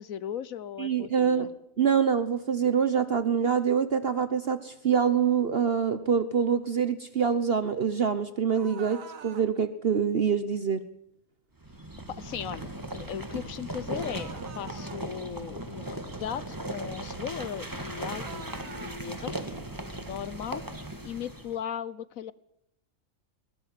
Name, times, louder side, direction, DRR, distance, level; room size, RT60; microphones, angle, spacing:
voice 1, 0.0-1.5 12.2-19.7 20.0-20.6 21.0-22.3, left 8 dB, 85° left, 18 dB, 1.4 m, -37 dB
voice 2, 0.8-1.5 1.8-10.8, right 7 dB, 50° right, 12 dB, 1.1 m, -25 dB
sound 1, 8.5-9.5 13.9-15.0 18.1-19.0, right 6 dB, 80° right, 1.7 m, -45 dB
sound 2, 11.6-21.6, right 1 dB, 15° right, 1.9 m, -38 dB
22.0 x 17.0 x 7.6 m, 0.78 s
omnidirectional pair, 1.4 m